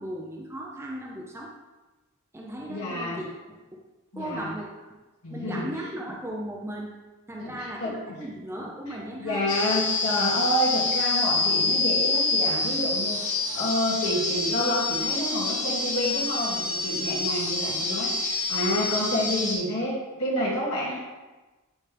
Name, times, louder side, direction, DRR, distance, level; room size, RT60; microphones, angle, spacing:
voice 1, 0.0-1.5 2.3-3.6 4.2-4.7 5.3-6.9 7.3-9.4, right 1 dB, 10° right, -2 dB, 0.6 m, -36 dB
voice 2, 2.7-3.2 4.1-4.5 5.2-5.7 7.4-8.2 9.2-21.0, equal, 80° left, -6 dB, 2.2 m, -29 dB
sound 1, 9.5-19.6, left 3 dB, 35° left, 1.3 m, -27 dB
9.7 x 3.4 x 3.4 m, 1.2 s
head